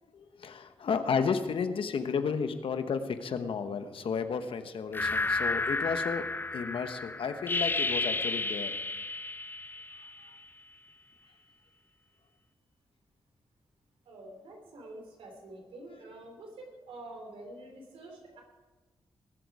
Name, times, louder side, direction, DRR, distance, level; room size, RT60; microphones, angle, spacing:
voice 1, 0.1-6.2 6.5-8.7, left 6 dB, 70° left, 9 dB, 1.1 m, -32 dB
sound 1, 4.9-10.4, left 3 dB, 20° left, 0.4 m, -32 dB
voice 2, 9.9-10.3 14.1-18.4, right 2 dB, 90° right, 2 dB, 3.1 m, -47 dB
20.0 x 8.0 x 4.8 m, 1.3 s
cardioid pair, 70°, 9 cm